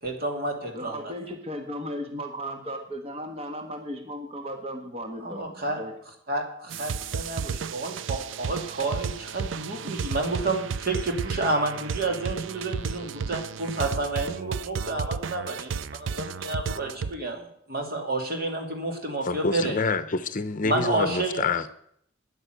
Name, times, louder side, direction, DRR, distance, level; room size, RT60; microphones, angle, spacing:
voice 1, 0.0-1.1 5.2-5.8 6.3-19.8 20.6-21.4, right 2 dB, 55° right, 2 dB, 2.9 m, -30 dB
voice 2, 0.7-5.9, equal, 35° right, 4 dB, 1.4 m, -36 dB
sound 1, 6.7-17.1, right 6 dB, 85° right, 0.5 m, -33 dB
voice 3, 19.2-21.7, left 4 dB, 45° left, 12 dB, 0.7 m, -27 dB
10.5 x 9.6 x 8.1 m, 0.69 s
head